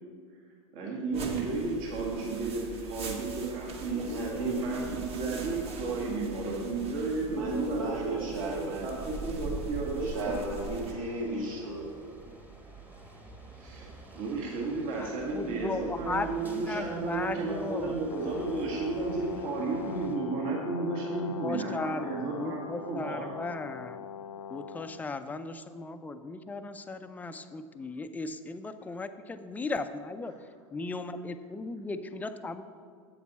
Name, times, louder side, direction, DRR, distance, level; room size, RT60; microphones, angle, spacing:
voice 1, 0.7-10.3 13.6-23.3, right 3 dB, 50° right, -3 dB, 1.6 m, -33 dB
sound 1, 1.1-10.9, right 3 dB, 35° right, 1.2 m, -42 dB
voice 2, 3.8-5.6 5.9-6.5 7.2-9.1 10.0-12.0, right 2 dB, 75° right, -2 dB, 2.3 m, -36 dB
sound 2, 8.6-20.2, right 2 dB, 10° right, 1.1 m, -50 dB
voice 3, 14.9-17.9 21.1-22.1 22.4-24.0 24.5-30.4 30.7-32.6, left 3 dB, 10° left, 10 dB, 0.4 m, -36 dB
Brass instrument, 18.1-25.1, left 8 dB, 80° left, 0.4 m, -42 dB
8.3 x 7.1 x 4.1 m, 2.1 s
hypercardioid pair, 100°, 17 cm